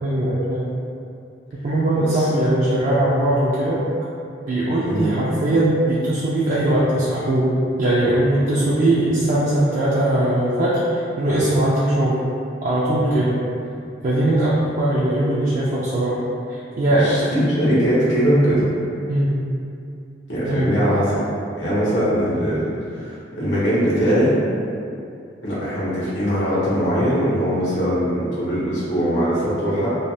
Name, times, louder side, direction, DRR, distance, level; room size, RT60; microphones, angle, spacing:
voice 1, 0.0-0.8 1.6-3.8 4.5-7.5 7.8-12.2 12.6-13.4 14.0-16.2 16.5-17.1 18.2-18.4 19.1-19.4 20.4-20.9, right 1 dB, 45° right, -8 dB, 0.3 m, -20 dB
voice 2, 1.9-2.3 4.9-5.1 16.9-18.6 20.3-21.2 21.5-24.3 25.4-29.9, equal, 75° left, -10 dB, 0.9 m, -21 dB
3.1 x 2.0 x 2.6 m, 2.5 s
head